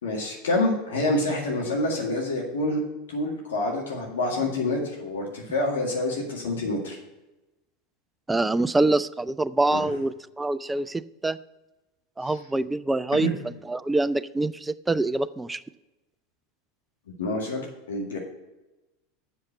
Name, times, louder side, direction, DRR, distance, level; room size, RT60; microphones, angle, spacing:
voice 1, 0.0-2.8 3.1-7.0 9.7-9.8 12.2-12.3 13.2-13.3 17.2-18.2, left 2 dB, 80° left, -1 dB, 1.9 m, -27 dB
voice 2, 8.3-11.4 12.2-13.3 13.7-15.6, right 2 dB, 10° right, 15 dB, 0.4 m, -25 dB
7.6 x 6.6 x 5.7 m, 1.0 s
hypercardioid pair, 90°, 0 cm